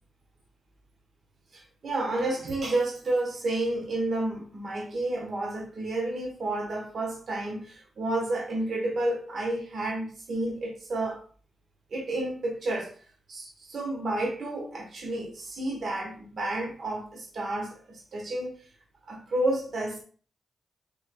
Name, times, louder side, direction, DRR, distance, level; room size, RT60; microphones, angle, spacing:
voice 1, 1.5-11.2 11.9-12.9 13.3-18.6 19.1-20.0, right 2 dB, 60° right, 1.0 m, -30 dB
3.4 x 3.2 x 2.2 m
cardioid pair, 60°, 0 cm